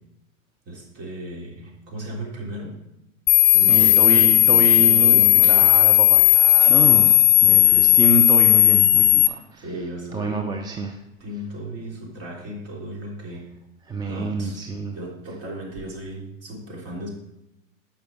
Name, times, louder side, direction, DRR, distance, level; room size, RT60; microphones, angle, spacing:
voice 1, 0.7-2.8 3.5-5.8 7.4-8.2 9.6-10.5 11.2-13.5 14.1-14.6 14.9-17.1, right 1 dB, 35° right, -2 dB, 3.5 m, -35 dB
sound 1, 3.3-9.3, left 14 dB, 35° left, 0.8 m, -15 dB
voice 2, 3.7-9.6 10.1-11.0 13.9-15.0, right 3 dB, 10° right, 3 dB, 0.5 m, -27 dB
9.3 x 5.8 x 5.2 m, 0.89 s
hypercardioid pair, 100°, 41 cm